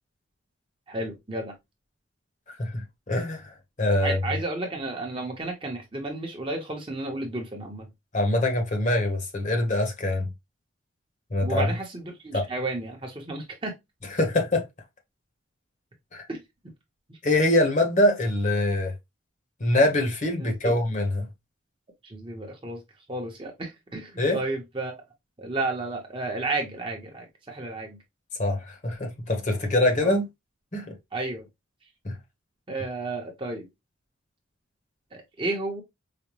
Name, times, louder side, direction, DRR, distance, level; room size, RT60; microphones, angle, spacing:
voice 1, 0.9-1.5 4.0-7.9 11.4-13.7 16.3-16.4 17.1-17.2 20.4-20.8 22.0-22.8 23.1-24.9 25.4-28.0 30.0-30.1 31.1-31.5 32.7-33.7 35.1-35.8, right 2 dB, 25° right, 0.8 m, -32 dB
voice 2, 2.5-3.5 3.8-4.2 8.1-10.3 11.3-11.6 12.3-12.4 14.1-14.6 16.1-16.3 17.2-18.9 19.6-21.3 24.2-24.4 28.4-30.3 30.7-30.9 32.0-32.2, left 1 dB, 35° left, 0.9 m, -24 dB
4.9 x 2.1 x 2.9 m
head